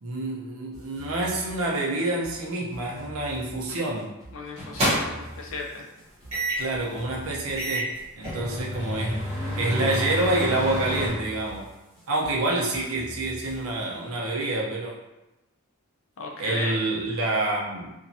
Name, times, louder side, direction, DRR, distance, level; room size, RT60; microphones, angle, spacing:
voice 1, 0.0-4.1 6.6-9.2 9.5-11.7 12.1-14.9 16.4-17.9, right 2 dB, 70° right, -2 dB, 0.6 m, -27 dB
sound 1, 0.7-14.0, equal, ahead, 0.8 m, -46 dB
sound 2, 3.7-3.9 4.6-5.3 6.3-6.7 7.2-7.3 7.6-11.1, equal, 25° right, 0.9 m, -29 dB
voice 2, 4.3-5.9 16.2-16.8, left 3 dB, 60° left, 0 dB, 0.5 m, -35 dB
2.9 x 2.3 x 2.7 m, 0.99 s
head